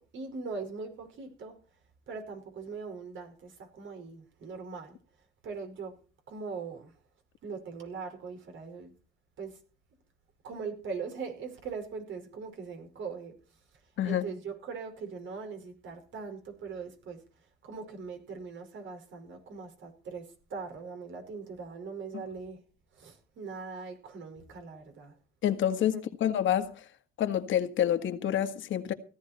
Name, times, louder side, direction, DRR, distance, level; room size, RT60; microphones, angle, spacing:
voice 1, 0.0-1.6 2.1-5.0 5.4-6.0 6.3-6.9 7.4-8.9 9.4-9.6 10.4-13.4 14.0-17.2 17.6-22.6 22.9-25.2 25.9-26.0, right 5 dB, 70° right, 5.2 m, -41 dB
voice 2, 25.4-26.9 27.2-28.9, left 10 dB, 75° left, 1.8 m, -28 dB
17.0 x 13.0 x 4.4 m
cardioid pair, 90°, 20 cm